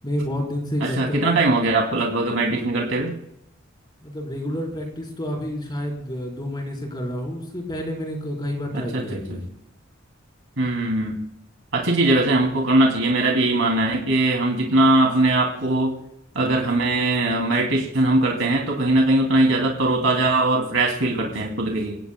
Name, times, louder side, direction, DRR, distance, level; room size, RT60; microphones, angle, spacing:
voice 1, 0.0-1.4 4.0-9.4, equal, 25° left, -1 dB, 4.2 m, -29 dB
voice 2, 0.8-3.1 8.7-9.0 9.3-9.4 10.6-11.1 11.7-15.9 16.3-22.0, right 2 dB, 80° right, 0 dB, 2.8 m, -20 dB
28.0 x 17.5 x 2.3 m, 0.76 s
head